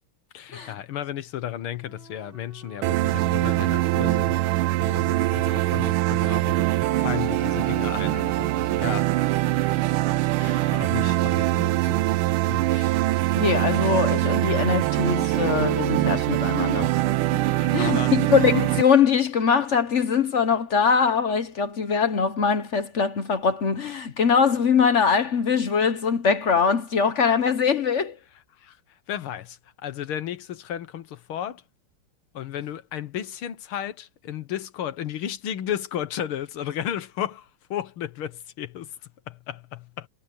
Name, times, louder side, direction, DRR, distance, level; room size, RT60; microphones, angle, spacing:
voice 1, 0.3-10.0 10.4-12.9 17.5-18.1 28.6-28.8 29.1-31.6 32.3-38.9 39.3-40.1, left 10 dB, 80° left, 2.0 m, -34 dB
Wind instrument woodwind instrument, 1.8-5.6 5.9-9.9, equal, 65° right, 5.9 m, -49 dB
sound 1, 2.8-18.8, right 16 dB, 80° right, 1.4 m, -23 dB
voice 2, 13.4-16.9 17.7-28.2, left 6 dB, 50° left, 0.8 m, -22 dB
omnidirectional pair, 2.3 m